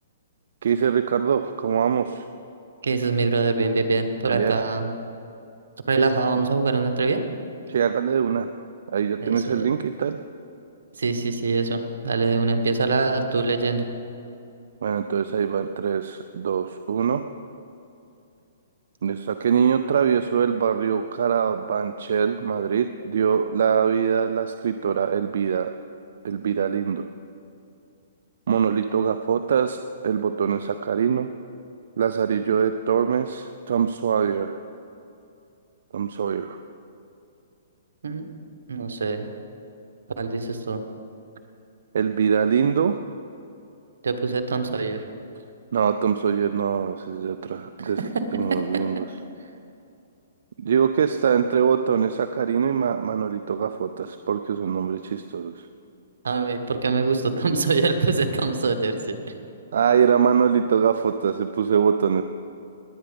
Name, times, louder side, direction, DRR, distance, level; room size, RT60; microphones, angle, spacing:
voice 1, 0.6-2.2 4.3-4.5 7.7-8.5 8.9-10.2 14.8-17.2 19.0-25.7 26.2-27.1 28.5-31.3 32.0-34.6 35.9-36.6 41.9-42.9 45.7-48.0 48.3-49.1 50.6-55.6 59.7-62.2, right 7 dB, 70° right, 9 dB, 0.5 m, -23 dB
voice 2, 2.8-4.9 5.9-7.2 9.2-9.7 11.0-13.8 38.0-38.3 38.7-39.3 40.2-40.8 44.0-45.0 47.8-48.2 48.7-49.0 56.2-59.2, right 4 dB, 85° right, 7 dB, 1.3 m, -24 dB
20.0 x 8.8 x 5.3 m, 2.7 s
hypercardioid pair, 150°, 0 cm